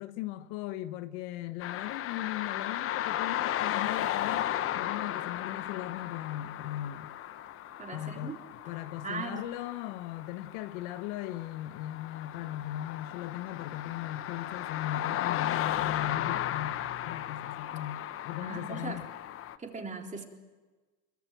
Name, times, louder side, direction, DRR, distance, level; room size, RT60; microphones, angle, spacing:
voice 1, 0.0-7.1 7.9-8.4 8.7-19.1, left 13 dB, 50° left, 1.1 m, -38 dB
sound 1, 1.6-19.6, left 12 dB, 30° left, 1.0 m, -35 dB
voice 2, 7.8-8.3 9.0-9.5 18.4-19.0 19.6-20.2, right 4 dB, 15° right, 3.8 m, -39 dB
25.0 x 23.5 x 9.2 m
supercardioid pair, 125°, 47 cm